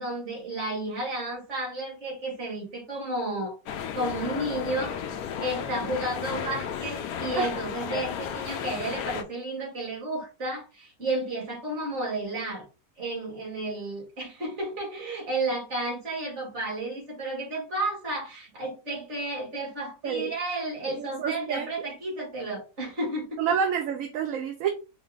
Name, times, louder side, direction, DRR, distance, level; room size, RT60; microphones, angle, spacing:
voice 1, 0.0-12.7 13.0-23.6, right 2 dB, 50° right, 1.9 m, -32 dB
sound 1, 3.7-9.2, left 8 dB, 85° left, 1.1 m, -33 dB
voice 2, 20.8-21.9 23.4-24.7, right 7 dB, 70° right, 0.9 m, -28 dB
4.6 x 2.1 x 3.4 m
omnidirectional pair, 1.5 m